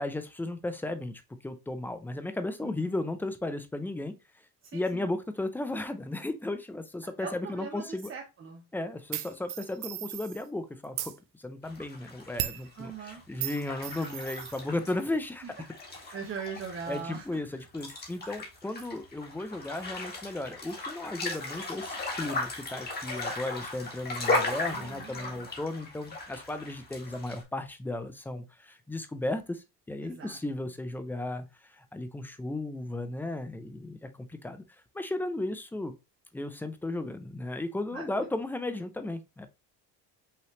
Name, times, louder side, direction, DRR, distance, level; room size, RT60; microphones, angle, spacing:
voice 1, 0.0-4.1 4.7-8.1 8.7-15.6 16.9-34.6 34.9-35.9 36.3-39.5, left 2 dB, 5° left, 0.4 m, -35 dB
voice 2, 2.6-3.0 4.6-5.1 7.2-8.6 12.8-13.2 15.4-17.4 24.6-25.5 30.0-30.4 37.9-38.1, right 5 dB, 30° right, 0.8 m, -41 dB
sound 1, 9.1-10.4 10.8-11.2 12.4-12.7 13.4-14.6, right 13 dB, 65° right, 0.6 m, -36 dB
sound 2, 11.6-27.4, left 2 dB, 25° left, 1.7 m, -36 dB
5.7 x 3.1 x 3.0 m
cardioid pair, 140°, 42 cm